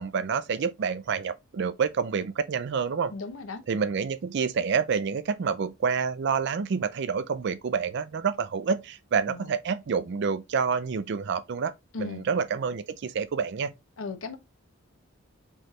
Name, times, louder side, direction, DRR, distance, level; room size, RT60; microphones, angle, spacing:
voice 1, 0.0-3.1 3.7-11.7 12.0-13.7, right 6 dB, 55° right, 0.4 m, -28 dB
voice 2, 3.1-3.6 9.2-9.5 11.9-12.3 14.0-14.4, left 4 dB, 75° left, 0.8 m, -36 dB
4.5 x 3.2 x 3.0 m
head